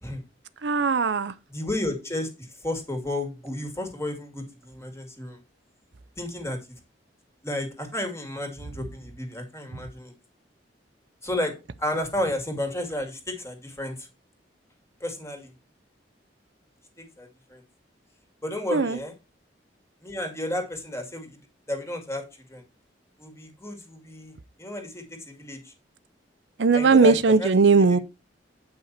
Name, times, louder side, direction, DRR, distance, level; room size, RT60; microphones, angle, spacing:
voice 1, 0.6-1.3 18.7-19.0 26.6-28.0, right 4 dB, 75° right, 0.6 m, -19 dB
voice 2, 1.5-5.4 6.2-6.6 7.4-10.1 11.2-11.5 11.8-13.9 15.0-15.5 17.0-17.6 18.4-19.1 20.0-21.4 21.7-22.2 22.5-22.6 23.2-25.7 26.7-27.5, left 1 dB, 15° left, 2.4 m, -32 dB
9.0 x 5.7 x 4.2 m
head